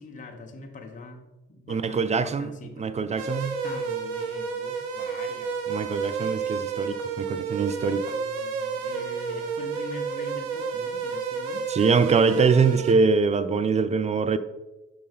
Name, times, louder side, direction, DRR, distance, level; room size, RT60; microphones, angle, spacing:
voice 1, 0.0-2.9 3.4-5.7 7.9-11.7, left 3 dB, 20° left, 1.0 m, -43 dB
voice 2, 1.7-3.6 5.7-8.2 11.7-14.4, right 5 dB, 20° right, 0.4 m, -23 dB
sound 1, 3.2-12.9, right 5 dB, 70° right, 0.7 m, -31 dB
6.4 x 5.2 x 3.6 m
figure-of-eight pair, 45°, 37 cm